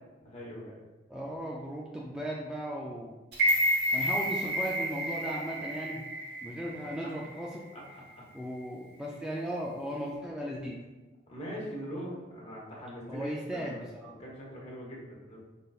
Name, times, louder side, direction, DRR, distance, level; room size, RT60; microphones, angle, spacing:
voice 1, 0.2-0.8 6.7-7.1 7.7-7.8 8.1-8.2 11.3-15.4, equal, 35° left, -3 dB, 1.1 m, -42 dB
voice 2, 1.1-3.1 3.9-6.0 6.4-7.6 8.3-10.8 13.1-14.1, equal, 5° right, -4 dB, 0.4 m, -37 dB
sound 1, 3.3-7.5 7.8-7.9, equal, 65° right, 1.1 m, -30 dB
5.1 x 4.0 x 2.4 m, 1.2 s
head